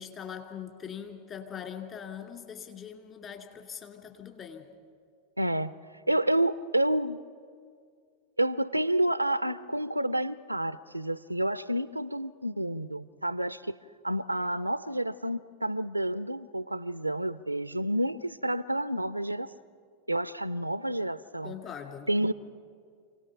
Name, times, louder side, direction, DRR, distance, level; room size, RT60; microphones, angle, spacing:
voice 1, 0.0-4.7 21.4-22.1, left 8 dB, 30° left, 4 dB, 2.4 m, -42 dB
voice 2, 5.4-5.7 6.1-7.2 8.4-13.8 14.0-19.5 20.1-21.5 22.1-22.3, right 1 dB, 85° right, 16 dB, 0.5 m, -29 dB
27.5 x 18.0 x 5.7 m, 2.1 s
figure-of-eight pair, 90°, 0 cm